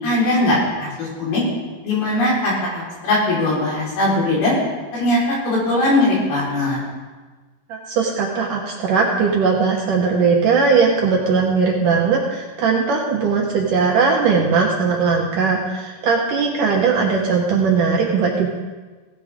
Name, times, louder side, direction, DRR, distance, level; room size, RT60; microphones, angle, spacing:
voice 1, 0.0-1.4 1.8-4.5 4.9-5.2 5.4-6.8, left 1 dB, 65° left, -6 dB, 6.4 m, -20 dB
voice 2, 7.7-18.5, right 5 dB, 65° right, -1 dB, 2.4 m, -19 dB
17.5 x 13.5 x 3.7 m, 1.3 s
omnidirectional pair, 4.9 m